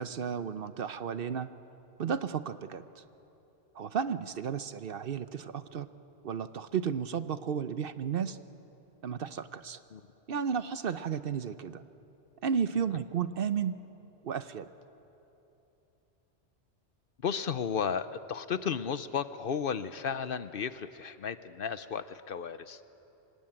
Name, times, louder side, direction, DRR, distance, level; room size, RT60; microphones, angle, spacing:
voice 1, 0.0-1.5 2.0-3.0 3.7-5.9 6.2-8.4 9.0-9.8 10.3-11.8 12.4-13.7 14.2-14.7, right 7 dB, 60° right, 12 dB, 0.8 m, -33 dB
voice 2, 17.2-22.8, left 7 dB, 55° left, 13 dB, 0.8 m, -34 dB
24.5 x 20.0 x 8.8 m, 3.0 s
omnidirectional pair, 1.2 m